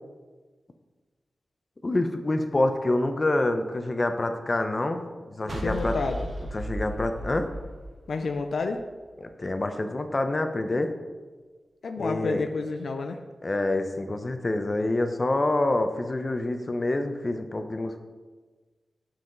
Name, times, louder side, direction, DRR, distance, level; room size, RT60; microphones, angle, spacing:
voice 1, 1.8-5.0 5.3-6.0 6.5-7.5 9.2-10.9 12.0-12.4 13.4-18.0, left 2 dB, 40° left, 7 dB, 0.7 m, -27 dB
voice 2, 5.5-6.3 8.1-8.8 11.8-13.2, left 4 dB, 85° left, 5 dB, 0.4 m, -30 dB
sound 1, 5.5-8.7, right 1 dB, 55° right, 1.2 m, -35 dB
7.7 x 5.7 x 3.9 m, 1.4 s
cardioid pair, 65°, 0 cm